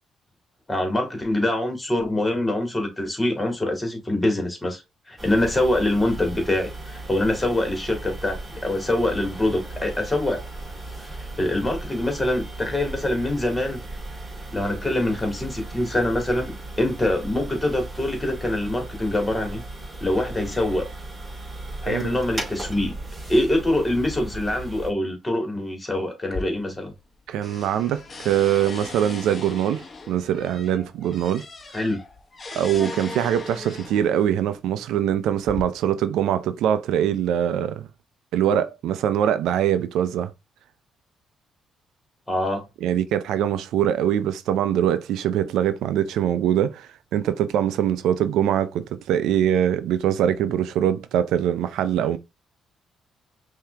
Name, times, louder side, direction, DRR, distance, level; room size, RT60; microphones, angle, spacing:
voice 1, 0.7-4.8 5.1-10.4 11.0-13.8 14.5-19.6 20.0-20.8 21.8-22.9 23.3-26.9 31.7-32.0 42.3-42.6, left 1 dB, 15° left, 2.2 m, -24 dB
sound 1, 5.2-24.9, right 2 dB, 20° right, 2.7 m, -36 dB
sound 2, 26.2-27.1 27.4-34.2 35.0-35.6, left 4 dB, 35° left, 1.0 m, -38 dB
voice 2, 27.3-31.4 32.5-37.9 38.3-40.3 42.8-52.2, right 10 dB, 85° right, 0.5 m, -23 dB
5.7 x 2.8 x 3.3 m
cardioid pair, 90°, 0 cm